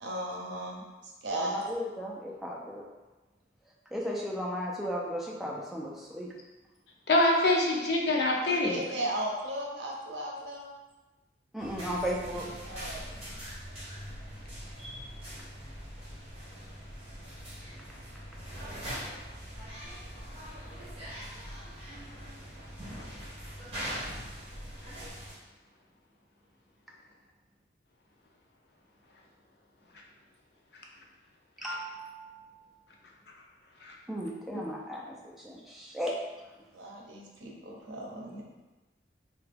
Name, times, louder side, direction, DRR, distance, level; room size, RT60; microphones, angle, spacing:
voice 1, 0.0-1.7 8.6-10.7 12.6-13.2 36.7-38.4, right 1 dB, 75° right, -2 dB, 0.6 m, -36 dB
voice 2, 1.4-2.8 3.9-6.3 11.5-12.5 14.8-15.0 31.6-32.3 34.1-36.2, equal, ahead, -3 dB, 0.3 m, -35 dB
voice 3, 7.1-8.8 31.6-31.7 33.8-33.9 34.5-34.6, left 2 dB, 60° left, -1 dB, 0.5 m, -25 dB
sound 1, 11.6-25.3, equal, 35° right, 1.1 m, -42 dB
2.9 x 2.2 x 3.3 m, 1.2 s
head